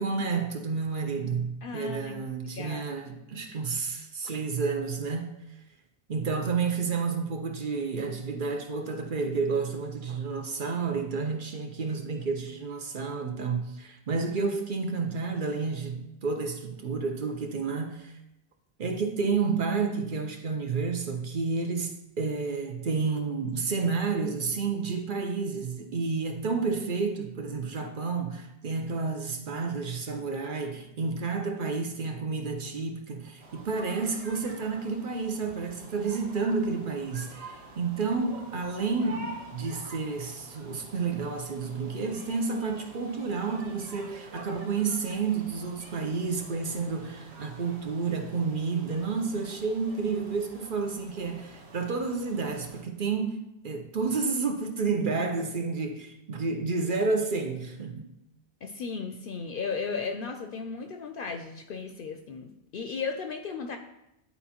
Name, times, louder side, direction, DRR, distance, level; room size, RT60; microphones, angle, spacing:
voice 1, 0.0-5.3 6.1-18.2 18.8-53.4 53.6-58.1, right 4 dB, 55° right, 0.9 m, -30 dB
voice 2, 1.6-2.2 2.4-2.9 58.6-63.8, left 5 dB, 65° left, 0.7 m, -35 dB
sound 1, 33.4-52.8, right 2 dB, 75° right, 1.3 m, -48 dB
11.0 x 4.1 x 2.9 m
omnidirectional pair, 1.0 m